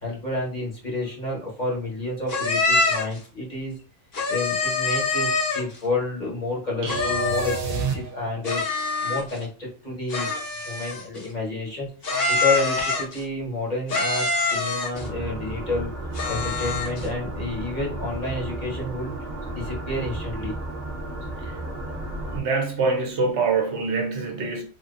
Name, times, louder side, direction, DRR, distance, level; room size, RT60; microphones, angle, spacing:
voice 1, 0.0-3.8 4.3-10.3 10.6-11.9 12.3-15.9 16.3-19.1 19.5-20.5, left 2 dB, 40° left, 1.2 m, -30 dB
sound 1, 2.3-3.2 4.1-5.8 6.9-7.7 8.4-9.4 10.1-11.2 12.0-13.2 13.9-15.1 16.1-17.1, left 3 dB, 75° left, 1.7 m, -25 dB
sound 2, 6.8-8.6, right 5 dB, 85° right, 1.1 m, -29 dB
sound 3, 14.9-22.4, right 2 dB, 45° right, 0.9 m, -33 dB
voice 2, 22.3-24.6, right 4 dB, 65° right, 1.0 m, -25 dB
3.3 x 2.7 x 2.5 m
omnidirectional pair, 1.3 m